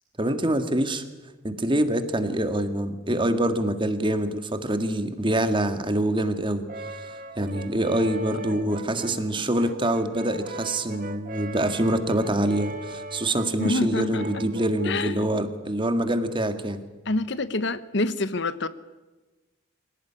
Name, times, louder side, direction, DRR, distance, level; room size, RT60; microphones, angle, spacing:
voice 1, 0.2-1.0 1.4-7.1 7.4-16.8, right 1 dB, 25° right, 9 dB, 1.8 m, -25 dB
Brass instrument, 6.7-15.2, right 2 dB, 45° right, 1.7 m, -39 dB
voice 2, 13.6-14.4 14.8-15.2 17.1-18.7, left 2 dB, 65° left, 14 dB, 1.1 m, -27 dB
25.5 x 18.0 x 10.0 m, 1.2 s
head